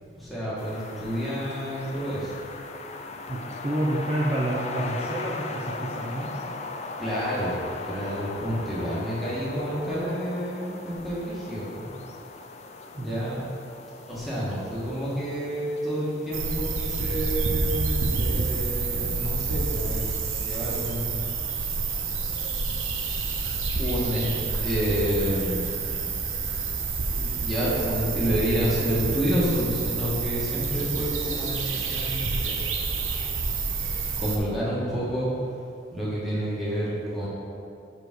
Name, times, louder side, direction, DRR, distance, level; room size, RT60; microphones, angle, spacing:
voice 1, 0.1-2.3 7.0-11.9 12.9-13.4 14.1-21.2 21.7-21.8 23.1-23.4 23.8-24.2 24.6-26.0 27.1-32.6 34.1-35.3 35.9-37.3, equal, ahead, -9 dB, 1.5 m, -29 dB
sound 1, 0.6-17.5, left 3 dB, 35° left, 0.3 m, -39 dB
voice 2, 3.3-6.3 13.0-13.3, right 1 dB, 25° right, -5 dB, 0.6 m, -29 dB
sound 2, 16.3-34.4, right 4 dB, 80° right, 0.7 m, -28 dB
5.0 x 4.9 x 6.1 m, 2.5 s
head